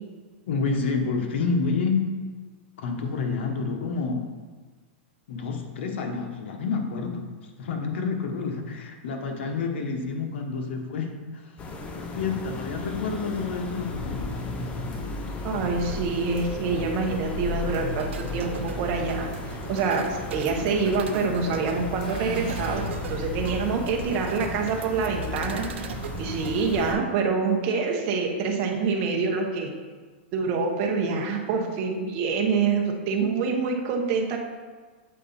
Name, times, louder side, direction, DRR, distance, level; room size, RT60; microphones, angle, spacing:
voice 1, 0.5-2.1 2.8-4.3 5.3-11.6 11.9-14.4, left 4 dB, 70° left, 4 dB, 1.0 m, -29 dB
sound 1, 11.6-26.9, left 2 dB, 20° left, 0.6 m, -34 dB
sound 2, 14.9-15.0 16.4-16.5 17.7-17.8 19.3-19.4 20.7-20.8 22.0-22.7, left 3 dB, 45° left, 1.9 m, -43 dB
voice 2, 15.4-25.9 26.2-29.7 30.3-34.4, right 4 dB, 40° right, 2 dB, 1.0 m, -26 dB
sound 3, 18.0-26.6, right 8 dB, 85° right, 0.5 m, -40 dB
7.6 x 4.2 x 4.1 m, 1.4 s
supercardioid pair, 150°, 6 cm